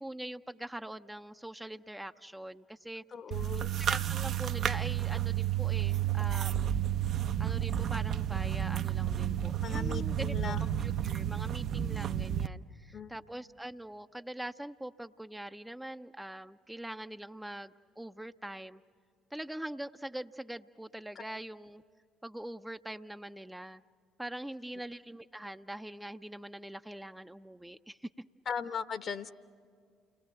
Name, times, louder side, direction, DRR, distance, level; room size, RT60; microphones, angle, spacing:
voice 1, 0.0-3.0 3.8-6.7 7.4-18.8 19.3-21.8 22.2-23.8 24.2-28.1, right 1 dB, 5° right, 8 dB, 0.6 m, -43 dB
voice 2, 3.1-3.7 9.6-10.7 12.9-13.1 28.5-29.3, left 6 dB, 45° left, 13 dB, 1.1 m, -38 dB
sound 1, 3.3-12.5, right 11 dB, 55° right, 0.7 m, -31 dB
29.5 x 20.5 x 7.8 m, 2.2 s
figure-of-eight pair, 55°, 0 cm